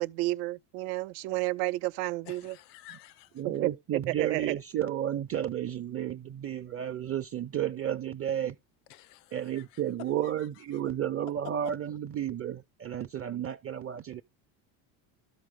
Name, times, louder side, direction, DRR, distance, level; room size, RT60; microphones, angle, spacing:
voice 1, 0.0-2.6 3.4-3.7 4.1-4.5, right 19 dB, 80° right, 0.7 m, -31 dB
voice 2, 2.2-3.4 8.9-9.8 10.4-10.8, left 13 dB, 85° left, 0.8 m, -53 dB
voice 3, 3.4-8.6 9.3-14.2, right 10 dB, 30° right, 0.6 m, -32 dB
13.0 x 4.7 x 3.6 m
supercardioid pair, 90°, 46 cm